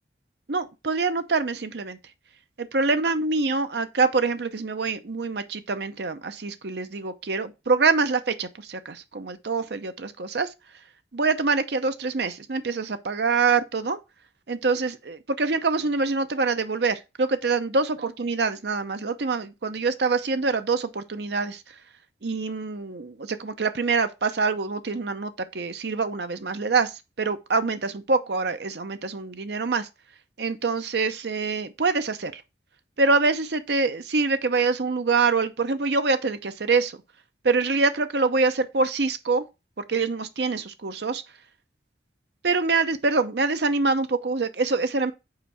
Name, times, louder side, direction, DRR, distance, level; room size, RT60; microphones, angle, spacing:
voice 1, 0.5-2.0 2.6-10.5 11.1-14.0 14.5-21.7 22.2-29.9 30.4-32.4 33.0-37.0 37.4-39.4 39.8-41.2 42.4-45.1, right 4 dB, 70° right, 0.7 m, -25 dB
4.9 x 4.6 x 5.5 m
head